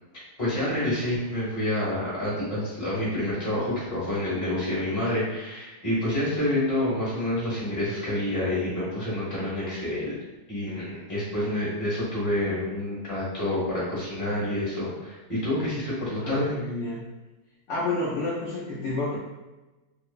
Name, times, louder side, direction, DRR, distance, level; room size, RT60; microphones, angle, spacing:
voice 1, 0.4-10.2 10.5-16.5, left 1 dB, 25° left, -9 dB, 0.9 m, -28 dB
voice 2, 16.2-17.1 17.7-19.2, left 2 dB, 80° left, -8 dB, 0.6 m, -29 dB
3.1 x 2.0 x 2.3 m, 1.1 s
omnidirectional pair, 2.0 m